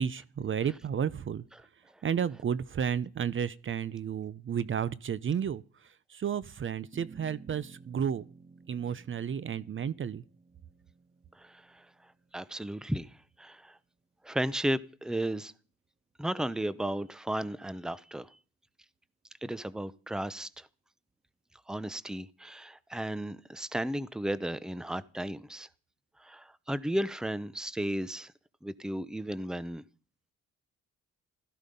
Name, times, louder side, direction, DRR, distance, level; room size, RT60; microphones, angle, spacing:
voice 1, 0.0-1.4 2.0-5.6 6.1-8.2 8.7-10.2, right 8 dB, 40° right, 0.7 m, -32 dB
sound 1, 6.9-13.5, right 4 dB, 20° right, 1.7 m, -54 dB
voice 2, 11.4-11.8 12.3-13.1 13.4-13.8 14.2-15.5 16.2-18.3 19.4-20.7 21.7-25.7 26.2-28.3 28.6-29.8, right 1 dB, ahead, 0.8 m, -34 dB
16.0 x 13.5 x 5.4 m
cardioid pair, 90°, 30 cm